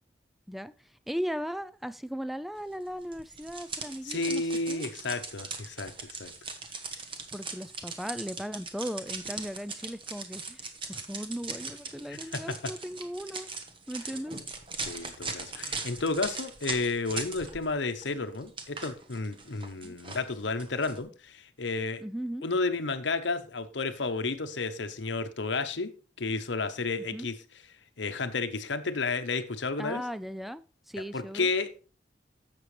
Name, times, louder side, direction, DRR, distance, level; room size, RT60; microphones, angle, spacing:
voice 1, 0.5-4.8 7.3-13.5 13.9-14.4 19.8-20.0 22.0-22.5 27.0-27.3 29.8-31.5, equal, ahead, 0.3 m, -37 dB
sound 1, 3.1-17.7 18.0-21.0, right 4 dB, 30° right, 1.2 m, -40 dB
voice 2, 4.0-6.3 12.1-12.2 12.5-12.7 14.9-22.0 22.4-25.9 26.2-27.4 28.0-30.0 31.1-31.8, left 3 dB, 75° left, 0.9 m, -32 dB
11.0 x 7.6 x 3.2 m
head